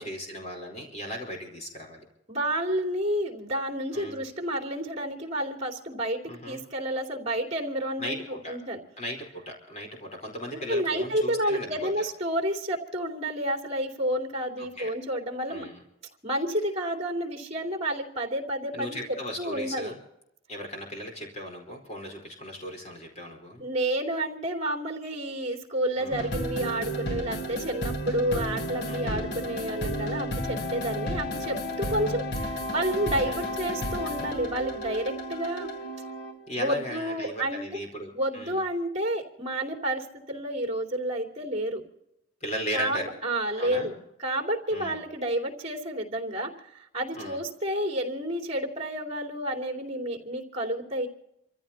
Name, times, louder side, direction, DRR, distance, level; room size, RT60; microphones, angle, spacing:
voice 1, 0.0-2.0 3.9-4.2 6.3-6.6 8.0-8.6 9.0-11.9 14.6-14.9 15.5-15.8 18.7-20.0 20.5-23.6 26.0-26.3 28.9-29.3 33.2-33.5 36.5-38.6 42.4-43.1 43.6-43.9 44.7-45.0 47.2-47.4, equal, 35° left, 1 dB, 4.5 m, -37 dB
voice 2, 2.3-8.8 10.5-15.6 16.2-19.9 23.6-35.7 36.5-37.6 38.1-41.8 42.7-51.1, right 1 dB, 35° right, 1 dB, 3.1 m, -30 dB
sound 1, 26.1-36.5, equal, 55° left, 1.4 m, -32 dB
28.5 x 14.5 x 2.9 m, 0.82 s
head